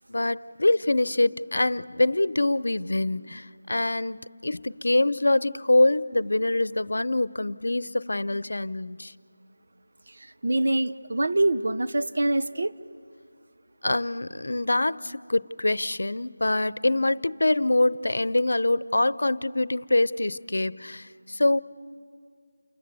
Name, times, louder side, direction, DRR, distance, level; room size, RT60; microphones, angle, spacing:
voice 1, 0.1-9.1 13.8-21.6, left 2 dB, 75° left, 0.7 m, -25 dB
voice 2, 10.1-12.7, right 2 dB, 55° right, 0.9 m, -25 dB
29.0 x 27.0 x 6.9 m
figure-of-eight pair, 175°, 0 cm